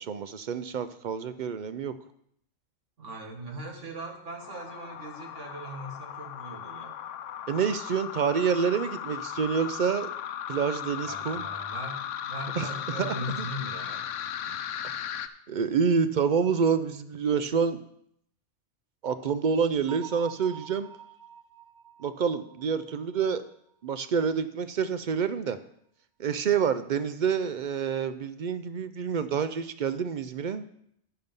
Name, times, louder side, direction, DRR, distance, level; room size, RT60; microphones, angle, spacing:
voice 1, 0.0-1.9 7.5-10.1 10.5-11.4 12.6-12.7 13.0-13.5 15.5-17.8 19.0-20.9 22.0-23.4 23.8-25.6 26.2-30.6, right 6 dB, 60° right, 11 dB, 0.5 m, -27 dB
voice 2, 3.0-7.0 11.0-14.0, equal, 85° right, 2 dB, 2.1 m, -39 dB
sound 1, 4.4-15.3, left 9 dB, 85° left, 1.0 m, -37 dB
Bell, 19.9-23.5, right 9 dB, 45° right, 0.9 m, -47 dB
10.0 x 6.6 x 5.3 m, 0.72 s
omnidirectional pair, 1.2 m